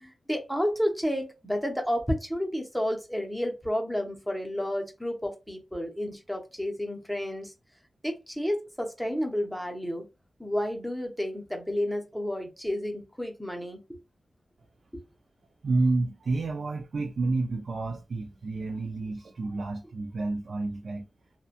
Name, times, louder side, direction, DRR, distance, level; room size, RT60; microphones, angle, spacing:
voice 1, 0.0-7.5 8.0-10.1 10.4-14.0 14.9-15.0, equal, ahead, 0.6 m, -31 dB
voice 2, 15.6-21.1, right 3 dB, 55° right, 0.4 m, -29 dB
2.7 x 2.2 x 2.4 m
wide cardioid pair, 170°, 0 cm